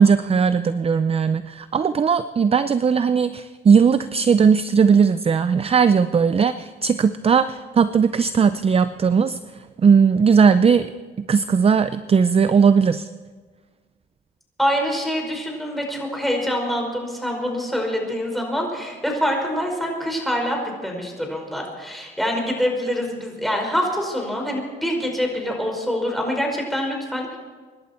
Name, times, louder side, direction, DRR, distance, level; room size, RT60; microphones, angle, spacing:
voice 1, 0.0-10.9 11.3-13.1, right 6 dB, 30° right, 13 dB, 0.5 m, -18 dB
voice 2, 14.6-20.6 20.8-27.4, equal, ahead, 0 dB, 5.2 m, -25 dB
25.0 x 11.5 x 4.5 m, 1.4 s
cardioid pair, 90°, 20 cm